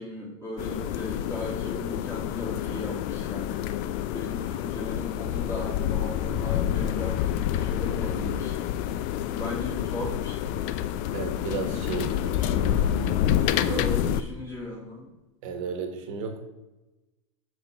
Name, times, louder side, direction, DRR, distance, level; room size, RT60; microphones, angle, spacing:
voice 1, 0.0-3.7 4.1-8.6 9.3-10.5 11.9-13.2 13.6-15.1, left 1 dB, 15° left, -6 dB, 2.2 m, -37 dB
sound 1, 0.6-14.2, left 11 dB, 50° left, 0.4 m, -28 dB
voice 2, 11.1-12.3 13.5-13.8 15.4-16.4, right 6 dB, 60° right, 5 dB, 1.5 m, -33 dB
6.1 x 5.1 x 4.2 m, 1.0 s
hypercardioid pair, 120°, 18 cm